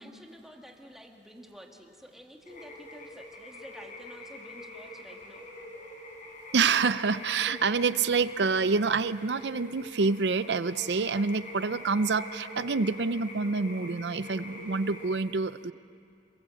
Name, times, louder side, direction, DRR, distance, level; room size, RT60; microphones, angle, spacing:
voice 1, 0.0-5.5, equal, ahead, 1 dB, 2.1 m, -50 dB
sound 1, 2.5-15.2, left 1 dB, 50° left, 5.0 m, -44 dB
voice 2, 6.5-15.7, right 4 dB, 70° right, 15 dB, 0.6 m, -27 dB
27.5 x 20.0 x 7.8 m, 2.5 s
head